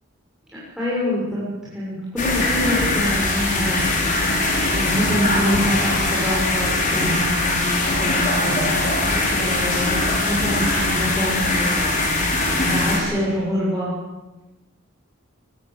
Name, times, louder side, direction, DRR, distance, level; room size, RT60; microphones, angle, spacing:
voice 1, 0.8-1.4 1.7-4.2 4.7-8.7 9.3-11.8 12.7-13.9, equal, ahead, -9 dB, 6.7 m, -25 dB
sound 1, 2.2-13.0, left 2 dB, 35° left, 5.6 m, -21 dB
23.0 x 17.0 x 8.4 m, 1.1 s
head